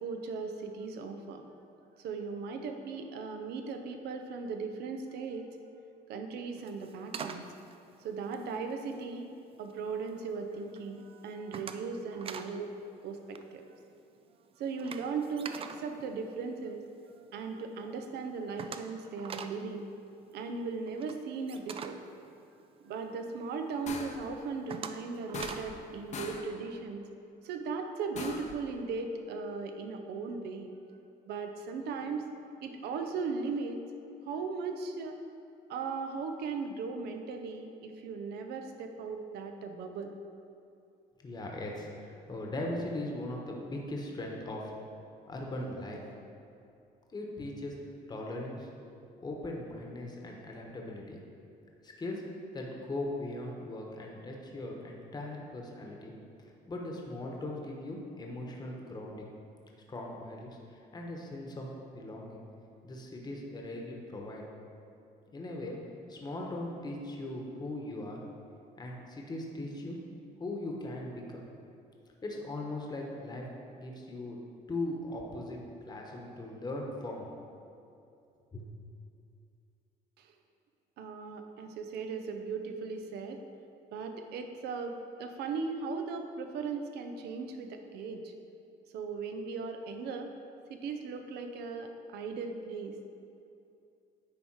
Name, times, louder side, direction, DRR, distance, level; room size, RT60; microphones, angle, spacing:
voice 1, 0.0-1.4 2.0-5.5 6.1-7.5 8.0-12.7 13.0-13.8 14.6-16.9 17.2-19.8 20.3-22.0 22.8-27.1 27.4-30.7 31.3-32.3 32.6-33.8 34.3-35.2 35.7-40.1 80.2-80.3 81.0-83.4 83.9-88.3 88.9-90.3 90.7-93.0, right 4 dB, 75° right, 5 dB, 0.7 m, -38 dB
sound 1, 6.6-9.1 9.5-10.1 10.5-10.8 11.1-12.6 12.8-13.0 13.3-17.0 17.4-17.5 17.8-17.9 18.1-23.1 23.6-23.7 24.2-25.8, right 6 dB, 35° right, 0.4 m, -45 dB
sound 2, 23.9-24.3 25.3-25.9 26.1-26.5 28.1-28.6, left 4 dB, 45° left, 0.7 m, -41 dB
voice 2, 41.2-44.7 45.3-46.0 47.1-47.8 48.1-48.8 49.2-51.2 51.8-56.1 56.7-59.3 59.9-61.7 61.9-62.4 62.8-64.4 65.3-65.8 66.1-68.2 68.8-70.0 70.4-71.4 72.2-73.5 73.8-74.4 74.7-77.3 78.5-78.7, left 1 dB, 25° left, -1 dB, 1.1 m, -39 dB
9.7 x 3.6 x 4.7 m, 2.6 s
cardioid pair, 110°, 17 cm